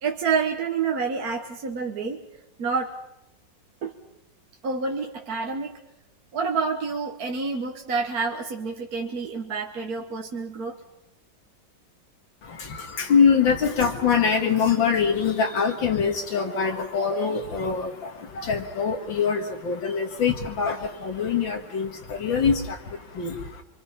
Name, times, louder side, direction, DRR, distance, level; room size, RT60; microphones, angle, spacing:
voice 1, 0.0-2.2 2.6-2.9 3.8-3.9 4.6-5.7 6.3-10.8, right 5 dB, 55° right, 2 dB, 1.7 m, -28 dB
voice 2, 12.4-23.6, left 6 dB, 80° left, 3 dB, 2.5 m, -24 dB
26.0 x 24.5 x 5.8 m, 0.89 s
omnidirectional pair, 2.1 m